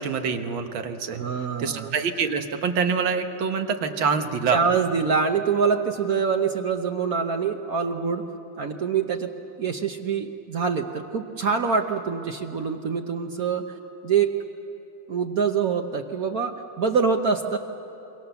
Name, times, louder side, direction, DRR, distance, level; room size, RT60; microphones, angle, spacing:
voice 1, 0.0-1.2 1.6-4.6, right 5 dB, 90° right, 6 dB, 2.0 m, -25 dB
voice 2, 1.1-1.9 4.5-8.2 8.6-9.3 9.6-13.6 14.0-14.3 15.1-17.6, right 6 dB, 55° right, 4 dB, 1.2 m, -25 dB
28.0 x 23.5 x 7.0 m, 2.9 s
omnidirectional pair, 2.1 m